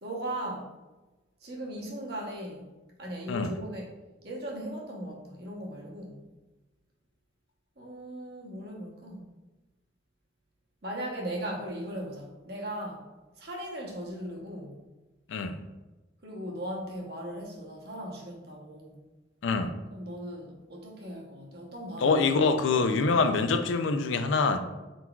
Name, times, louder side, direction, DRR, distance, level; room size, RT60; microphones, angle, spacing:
voice 1, 0.0-0.7 1.4-2.7 3.0-3.9 4.2-6.2 7.8-9.3 10.8-13.0 13.4-14.8 16.2-19.0 19.9-22.4, right 1 dB, 55° right, -1 dB, 0.9 m, -38 dB
voice 2, 19.4-19.7 22.0-24.6, left 4 dB, 80° left, 8 dB, 0.4 m, -25 dB
4.4 x 3.9 x 2.3 m, 1.1 s
head